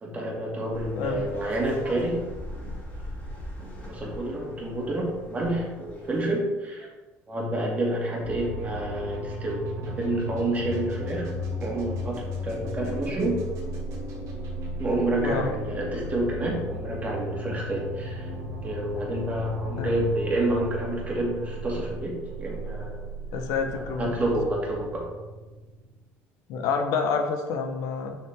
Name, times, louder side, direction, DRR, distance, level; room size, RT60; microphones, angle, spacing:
voice 1, 0.0-2.2 3.9-6.9 7.3-11.3 11.6-13.4 14.8-18.3 18.6-23.0 23.7-25.1, right 1 dB, 25° right, -3 dB, 2.2 m, -29 dB
sound 1, 0.7-6.4, left 1 dB, 30° left, 2.4 m, -40 dB
sound 2, 8.2-26.0, equal, 65° right, 1.6 m, -36 dB
voice 2, 23.3-24.3 26.5-28.2, left 5 dB, 70° left, 6 dB, 1.0 m, -28 dB
6.4 x 5.8 x 3.6 m, 1.2 s
cardioid pair, 105°, 6 cm